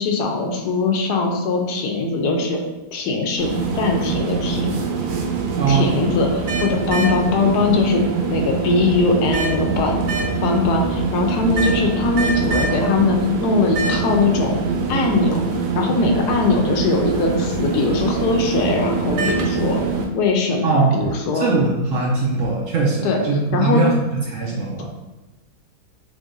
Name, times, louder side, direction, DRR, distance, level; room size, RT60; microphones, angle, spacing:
voice 1, 0.0-2.6 2.9-4.8 5.7-8.0 8.3-10.0 10.4-14.6 14.9-15.4 15.8-19.8 20.1-21.5 23.0-23.2 23.5-23.8, left 3 dB, 80° left, 2 dB, 1.2 m, -21 dB
sound 1, 3.4-20.1, right 4 dB, 80° right, 1.2 m, -23 dB
voice 2, 5.6-5.9 20.6-24.9, right 3 dB, 65° right, -2 dB, 0.8 m, -21 dB
3.7 x 3.3 x 2.6 m, 1.1 s
omnidirectional pair, 1.7 m